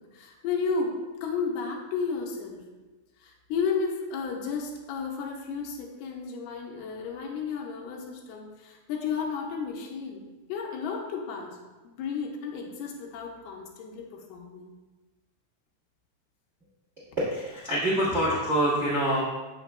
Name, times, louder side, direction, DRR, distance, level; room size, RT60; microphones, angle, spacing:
voice 1, 0.1-0.9 1.2-2.6 3.2-11.6 11.8-14.7 18.1-18.2, left 5 dB, 85° left, 0 dB, 2.6 m, -33 dB
voice 2, 17.2-19.2, right 1 dB, 75° right, -8 dB, 0.6 m, -25 dB
7.2 x 5.9 x 2.2 m, 1.2 s
omnidirectional pair, 4.6 m